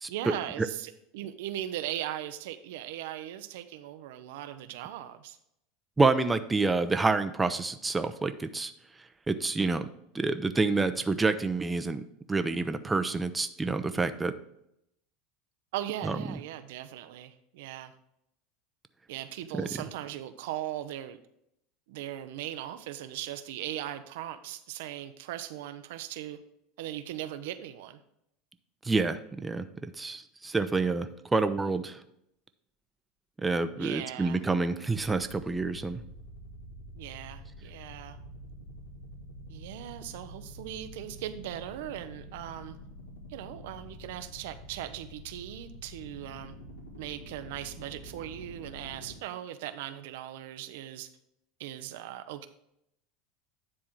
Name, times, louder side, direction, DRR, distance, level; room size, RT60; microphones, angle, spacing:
voice 1, 0.1-5.4 15.7-17.9 19.1-21.2 21.9-26.4 26.8-28.0 33.7-34.4 37.0-38.2 39.5-42.8 43.3-46.5 47.0-51.1 51.6-52.5, right 12 dB, 70° right, 10 dB, 0.6 m, -39 dB
voice 2, 6.0-8.7 9.3-9.9 10.1-12.0 12.3-14.3 16.0-16.2 19.5-19.7 28.8-32.0 33.4-36.0, right 3 dB, 15° right, 10 dB, 0.6 m, -28 dB
sound 1, 34.9-49.2, equal, 90° left, 1.6 m, -47 dB
9.8 x 3.7 x 5.9 m, 0.77 s
hypercardioid pair, 85°, 0 cm